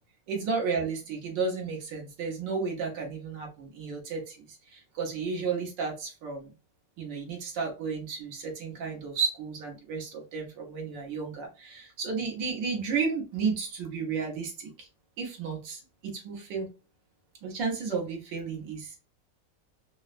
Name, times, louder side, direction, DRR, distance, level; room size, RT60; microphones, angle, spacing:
voice 1, 0.3-6.5 7.0-14.9 15.2-16.7 17.4-19.0, right 5 dB, 85° right, 1 dB, 1.8 m, -33 dB
4.7 x 2.1 x 2.4 m, 0.31 s
omnidirectional pair, 1.9 m